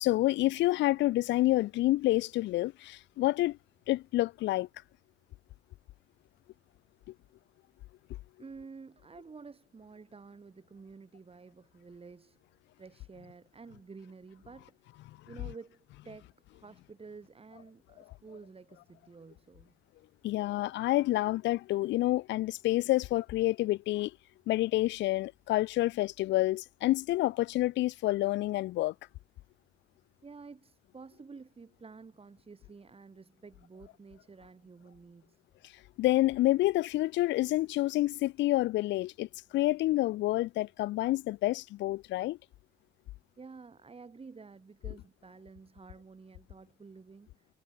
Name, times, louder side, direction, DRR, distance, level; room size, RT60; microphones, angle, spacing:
voice 1, 0.0-3.6 3.9-4.7 20.2-24.1 24.5-28.9 36.0-42.4, left 17 dB, 85° left, 0.4 m, -28 dB
voice 2, 8.4-12.4 12.8-15.8 16.0-19.7 30.2-35.4 43.4-47.5, right 4 dB, 30° right, 5.6 m, -51 dB
cardioid pair, 95°, 18 cm